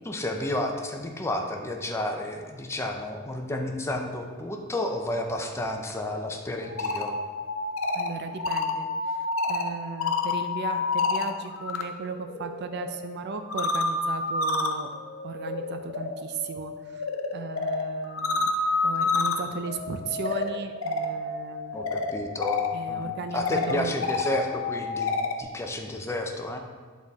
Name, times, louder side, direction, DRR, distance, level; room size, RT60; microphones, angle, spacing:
voice 1, 0.1-7.2 21.7-23.1 23.3-26.6, left 1 dB, 15° left, 3 dB, 0.5 m, -31 dB
sound 1, 6.6-11.8 12.1-25.4, left 3 dB, 70° left, 0.6 m, -29 dB
voice 2, 7.9-9.2 9.5-14.9 15.2-17.1 17.3-18.5 18.8-21.9 22.7-23.9, right 4 dB, 50° right, 7 dB, 0.4 m, -36 dB
8.5 x 4.1 x 3.5 m, 1.5 s
head